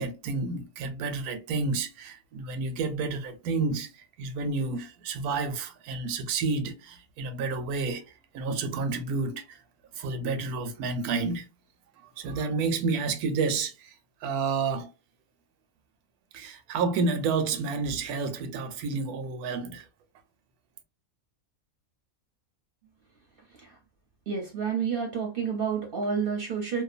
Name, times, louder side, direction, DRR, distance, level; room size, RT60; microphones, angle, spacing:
voice 1, 0.0-3.9 4.2-9.6 10.0-11.5 12.2-13.9 14.2-14.9 16.3-19.9, right 4 dB, 90° right, 1.1 m, -30 dB
voice 2, 24.3-26.8, right 6 dB, 55° right, 0.6 m, -30 dB
2.8 x 2.2 x 2.4 m
omnidirectional pair, 1.5 m